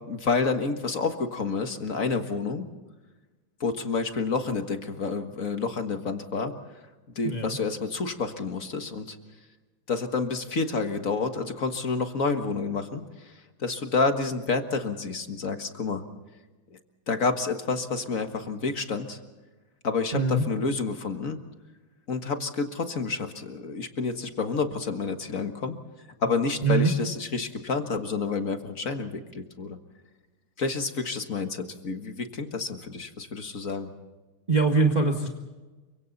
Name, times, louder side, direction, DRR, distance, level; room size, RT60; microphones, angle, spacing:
voice 1, 0.1-2.6 3.6-6.8 7.1-9.2 9.9-16.0 17.1-19.2 19.8-21.4 22.1-25.7 26.2-29.8 30.6-33.9, left 4 dB, 40° left, 6 dB, 1.8 m, -29 dB
voice 2, 7.2-7.6 20.1-20.4 26.6-26.9 34.5-35.3, right 3 dB, 20° right, 2 dB, 1.6 m, -23 dB
29.5 x 25.0 x 4.1 m, 1.2 s
omnidirectional pair, 2.3 m